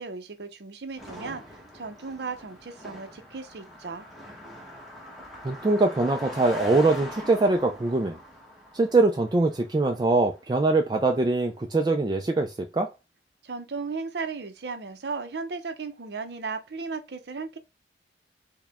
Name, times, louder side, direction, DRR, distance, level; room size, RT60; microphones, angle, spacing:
voice 1, 0.0-4.1 13.4-17.6, right 4 dB, 65° right, 0.6 m, -36 dB
Car passing by, 1.0-10.5, equal, ahead, 0.9 m, -43 dB
voice 2, 5.4-8.2 8.7-12.9, right 2 dB, 25° right, 0.3 m, -23 dB
4.7 x 2.2 x 3.4 m
head